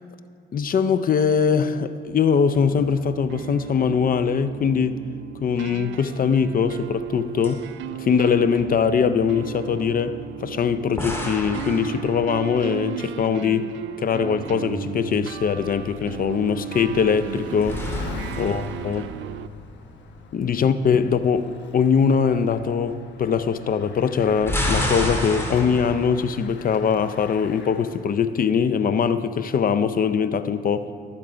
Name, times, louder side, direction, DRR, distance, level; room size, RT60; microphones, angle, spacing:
voice 1, 0.5-5.0 5.4-7.7 8.0-13.7 14.0-17.8 18.4-19.1 20.3-30.9, left 6 dB, 45° left, 0.6 m, -22 dB
sound 1, 2.5-19.5, right 12 dB, 70° right, 0.4 m, -36 dB
sound 2, 6.5-7.2 7.4-7.6 11.0-12.6 17.2-19.7 24.2-26.2, left 1 dB, 10° left, 2.6 m, -30 dB
Bicycle, 13.8-28.4, left 4 dB, 65° left, 1.1 m, -43 dB
21.0 x 7.4 x 5.1 m
cardioid pair, 90°, 20 cm